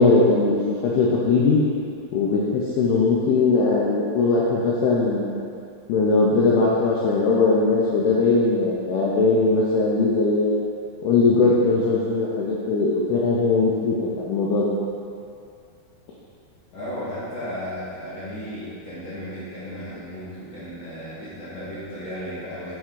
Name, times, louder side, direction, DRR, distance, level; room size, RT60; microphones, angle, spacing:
voice 1, 0.0-1.6 2.1-5.4 5.9-10.6 11.0-14.7, left 3 dB, 85° left, -5 dB, 2.2 m, -20 dB
voice 2, 16.7-22.7, equal, 65° left, -14 dB, 1.6 m, -34 dB
8.7 x 3.5 x 3.8 m, 2.4 s
omnidirectional pair, 5.2 m